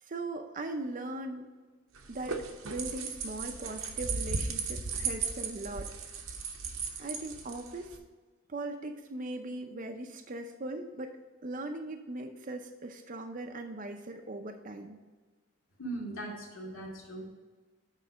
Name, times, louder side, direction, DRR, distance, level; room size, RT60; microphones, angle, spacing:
voice 1, 0.0-1.5 2.1-5.9 7.0-7.9 8.5-11.2 11.4-15.0, right 2 dB, 40° right, 4 dB, 0.5 m, -39 dB
sound 1, 1.9-8.0, right 5 dB, 85° right, 0.9 m, -36 dB
voice 2, 15.8-17.3, right 2 dB, 80° left, -3 dB, 2.3 m, -39 dB
9.3 x 3.3 x 6.1 m, 1.3 s
head